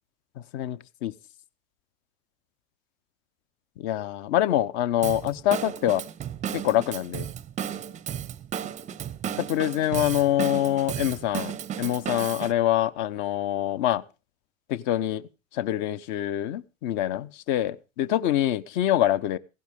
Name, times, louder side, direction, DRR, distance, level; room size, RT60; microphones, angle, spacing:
voice 1, 0.5-1.1 3.8-6.0 6.5-7.3 9.4-14.0 14.7-15.2 15.5-19.4, left 12 dB, 45° left, 0.7 m, -25 dB
Drum kit / Drum, 5.0-12.5, right 9 dB, 20° right, 0.5 m, -34 dB
15.5 x 11.5 x 3.6 m
hypercardioid pair, 95°, 41 cm